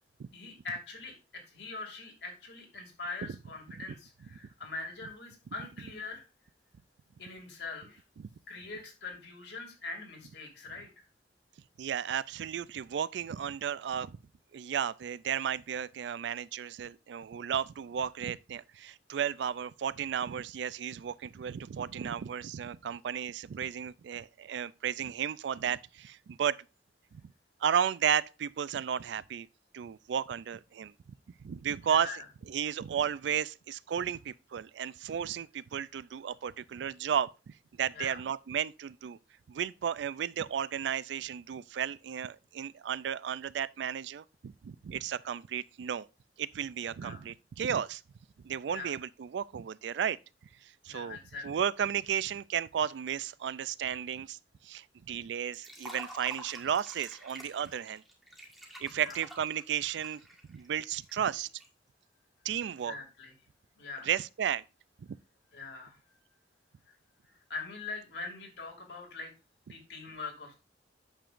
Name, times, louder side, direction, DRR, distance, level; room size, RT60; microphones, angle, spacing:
voice 1, 0.3-1.1 1.4-6.2 7.2-8.0 8.5-11.0 31.8-32.2 37.9-38.2 47.0-47.2 48.7-48.9 50.9-51.5 59.0-59.2 62.7-63.3 63.8-64.1 65.5-66.0 67.5-69.3 69.7-70.5, left 3 dB, 70° left, 2.6 m, -42 dB
voice 2, 11.8-14.2 14.5-26.6 27.6-29.5 29.7-30.9 31.4-32.1 32.5-39.2 39.5-46.1 46.4-48.0 48.4-50.2 50.6-51.2 51.4-54.4 54.6-58.0 58.8-60.2 60.5-61.5 62.4-63.0 64.0-64.6, right 8 dB, 70° right, 0.3 m, -33 dB
Liquid, 55.5-61.7, right 1 dB, ahead, 1.5 m, -49 dB
8.9 x 6.9 x 2.5 m
head